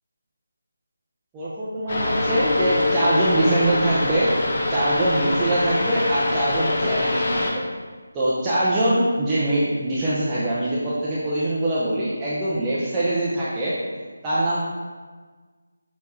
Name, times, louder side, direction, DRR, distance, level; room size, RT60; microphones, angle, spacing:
voice 1, 1.3-4.3 4.7-7.6 8.1-13.8 14.2-14.6, right 1 dB, 10° right, -11 dB, 0.7 m, -23 dB
sound 1, 1.9-7.5, left 2 dB, 40° left, 1.1 m, -24 dB
6.6 x 4.1 x 4.8 m, 1.4 s
figure-of-eight pair, 175°, 0 cm